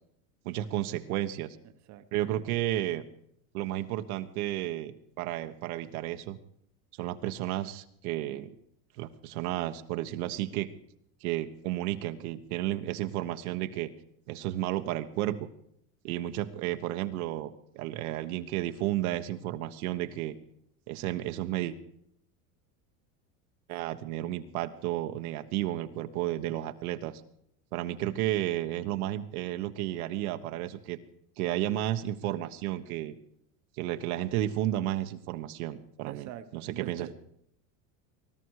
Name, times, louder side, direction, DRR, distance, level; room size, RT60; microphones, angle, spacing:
voice 1, 0.4-1.6 2.1-3.0 3.5-6.4 7.0-8.5 9.0-10.7 11.2-13.9 14.3-15.5 16.0-20.3 20.9-21.7 23.7-27.2 27.7-31.0 31.4-33.2 33.8-37.1, right 14 dB, 75° right, 8 dB, 1.4 m, -32 dB
voice 2, 36.0-37.1, right 12 dB, 40° right, 9 dB, 1.1 m, -43 dB
20.0 x 12.5 x 4.8 m, 0.69 s
supercardioid pair, 145°, 44 cm